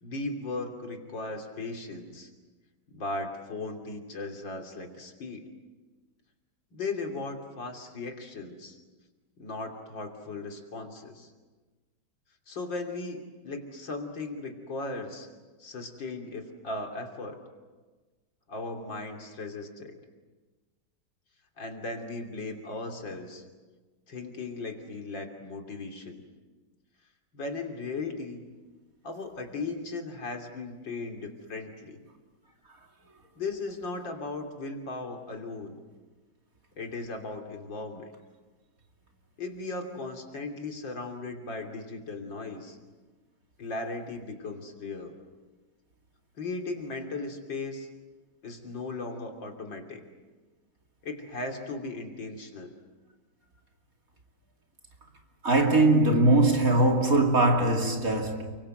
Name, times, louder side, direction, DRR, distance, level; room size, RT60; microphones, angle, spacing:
voice 1, 0.0-2.3 2.9-5.5 6.7-8.8 9.4-11.3 12.5-15.3 15.6-17.4 18.5-20.0 21.6-23.4 24.1-26.2 27.3-28.5 29.0-32.0 33.4-35.8 36.8-38.1 39.4-42.8 43.6-45.2 46.4-47.9 48.4-50.0 51.0-52.7, left 3 dB, 60° left, 3.7 m, -37 dB
voice 2, 55.4-58.6, right 2 dB, 40° right, 3.0 m, -21 dB
30.0 x 24.0 x 7.8 m
omnidirectional pair, 2.3 m